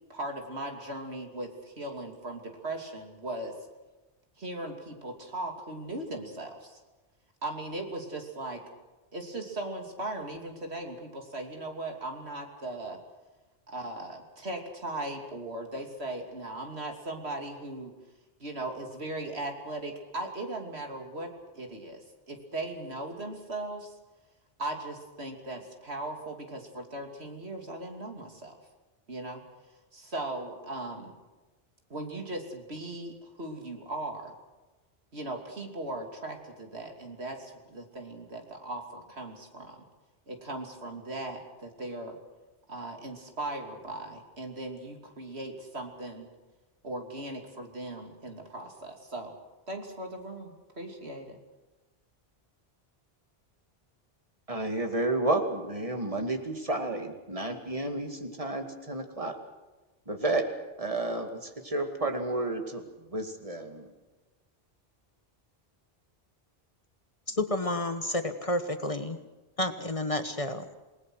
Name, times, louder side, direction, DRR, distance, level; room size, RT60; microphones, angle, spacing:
voice 1, 0.1-3.5 4.4-6.8 7.4-8.6 9.1-13.0 13.7-17.9 18.4-23.9 24.6-28.6 29.1-29.4 29.9-31.1 31.9-34.3 35.1-39.8 40.3-42.2 42.7-46.3 46.8-49.3 49.7-51.4, right 2 dB, 85° right, 3 dB, 3.2 m, -38 dB
voice 2, 54.5-59.4 60.1-60.5 60.8-63.9, right 2 dB, 35° right, 5 dB, 2.3 m, -31 dB
voice 3, 67.3-69.2 69.6-70.7, left 1 dB, 35° left, 8 dB, 1.4 m, -30 dB
28.0 x 19.5 x 6.3 m, 1.2 s
omnidirectional pair, 1.1 m